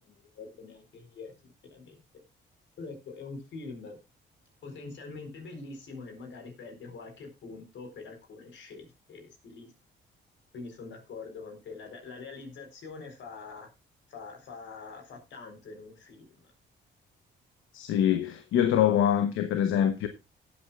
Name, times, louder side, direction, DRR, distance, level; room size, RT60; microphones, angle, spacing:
voice 1, 0.0-2.0 2.8-4.0 4.6-9.7 10.5-13.7 14.1-16.5, left 4 dB, 70° left, 4.3 m, -44 dB
voice 2, 17.7-20.1, left 10 dB, 90° left, 1.0 m, -24 dB
17.5 x 8.6 x 2.3 m
cardioid pair, 90°, 20 cm